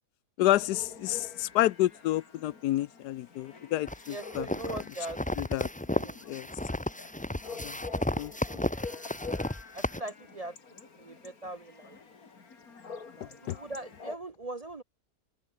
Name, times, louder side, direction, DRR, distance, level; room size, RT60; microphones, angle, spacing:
voice 1, 0.4-4.5 5.4-5.7 6.3-6.5 7.6-7.7 8.2-8.3 13.5-13.6, left 15 dB, 85° left, 1.2 m, -29 dB
Chatter / Bark / Livestock farm animals working animals, 0.6-14.2, left 5 dB, 65° left, 2.9 m, -47 dB
sound 1, 3.9-10.0, left 1 dB, 10° left, 0.5 m, -33 dB
voice 2, 4.1-5.2 5.9-6.2 8.7-9.0 9.7-10.6 11.0-12.0 13.2-14.8, right 2 dB, 40° right, 0.5 m, -40 dB
omnidirectional pair, 1.7 m